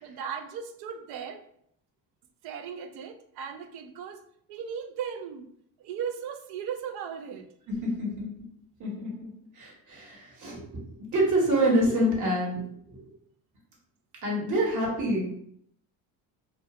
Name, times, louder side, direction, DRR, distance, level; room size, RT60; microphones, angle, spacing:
voice 1, 0.0-1.4 2.4-4.2 4.5-5.5 5.8-7.5, right 7 dB, 75° right, 7 dB, 0.5 m, -37 dB
voice 2, 7.7-8.3 8.8-10.8 11.1-12.6 14.2-15.3, equal, 50° right, -2 dB, 1.1 m, -27 dB
2.3 x 2.3 x 2.8 m, 0.68 s
cardioid pair, 90°, 39 cm